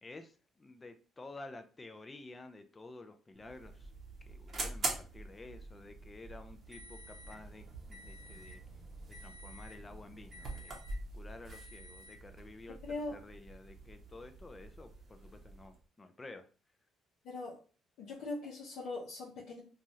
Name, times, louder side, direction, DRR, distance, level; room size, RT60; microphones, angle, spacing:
voice 1, 0.0-3.9 4.3-7.6 7.9-8.6 9.2-10.7 11.1-16.5, left 2 dB, 20° left, 7 dB, 0.3 m, -51 dB
sound 1, 3.3-15.8, right 2 dB, 40° right, 0.7 m, -45 dB
voice 2, 12.8-13.2 17.2-17.6 18.0-19.6, left 2 dB, 75° left, -5 dB, 0.7 m, -41 dB
3.1 x 2.3 x 2.6 m, 0.36 s
cardioid pair, 130°, 0 cm